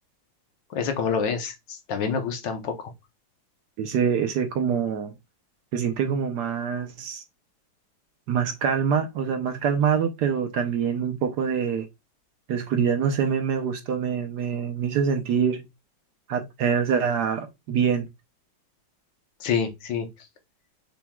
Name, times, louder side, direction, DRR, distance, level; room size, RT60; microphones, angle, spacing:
voice 1, 0.7-2.9 19.4-20.1, left 6 dB, 75° left, 1.5 m, -27 dB
voice 2, 3.8-5.1 5.7-7.2 8.3-11.9 12.5-15.7 16.3-18.1, right 7 dB, 70° right, 1.2 m, -25 dB
5.9 x 3.6 x 2.2 m
omnidirectional pair, 2.0 m